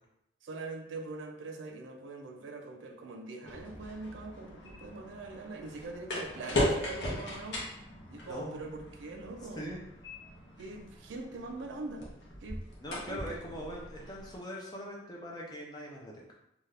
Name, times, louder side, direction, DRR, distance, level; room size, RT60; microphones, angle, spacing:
voice 1, 0.4-7.6 8.1-9.6 10.6-12.1 12.4-12.6 13.1-13.7, right 3 dB, 85° right, 4 dB, 0.4 m, -43 dB
sound 1, 3.5-14.4, left 1 dB, 65° left, 0.8 m, -38 dB
voice 2, 8.2-8.6 9.2-9.8 12.8-16.3, equal, 20° left, -2 dB, 0.5 m, -42 dB
2.6 x 2.3 x 3.2 m, 0.83 s
head